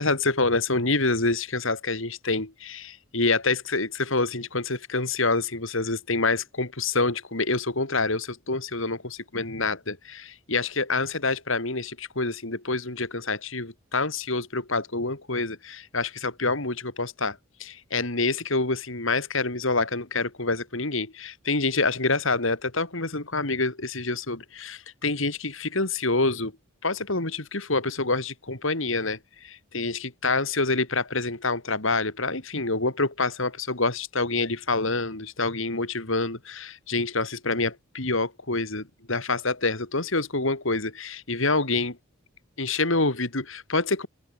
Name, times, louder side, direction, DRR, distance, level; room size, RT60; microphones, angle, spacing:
voice 1, 0.0-26.5 26.8-42.0 42.6-44.1, left 3 dB, 70° left, 3.3 m, -27 dB
head